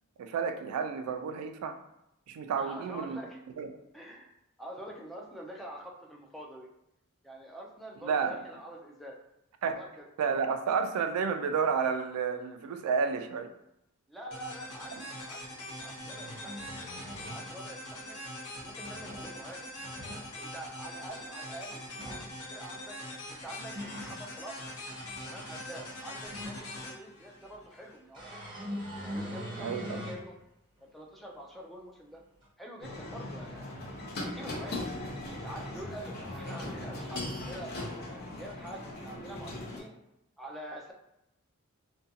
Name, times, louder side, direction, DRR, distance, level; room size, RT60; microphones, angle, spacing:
voice 1, 0.2-1.7 2.3-3.2 3.6-3.7 8.0-8.4 9.6-9.8 10.2-13.5 15.0-15.1 29.6-30.0, right 6 dB, 85° right, 12 dB, 0.3 m, -31 dB
voice 2, 2.6-3.4 3.9-4.3 4.6-6.7 7.2-9.2 9.6-10.0 14.1-16.6 17.0-18.2 18.5-19.7 20.4-23.0 23.3-24.7 25.2-28.6 29.0-30.4 30.9-32.2 32.6-33.8 34.2-37.9 38.4-39.9 40.4-40.9, right 1 dB, ahead, -1 dB, 0.3 m, -46 dB
sound 1, 14.3-28.0, left 1 dB, 80° left, 0.8 m, -43 dB
sound 2, 15.9-17.5 18.6-19.3 19.8-20.3 21.8-22.3 23.3-24.2 24.7-26.9 28.1-30.3 30.8-30.9 32.4-32.5, equal, 20° right, 0.7 m, -42 dB
sound 3, 32.8-39.8, left 1 dB, 50° left, 0.6 m, -39 dB
2.5 x 2.2 x 2.7 m, 0.84 s
head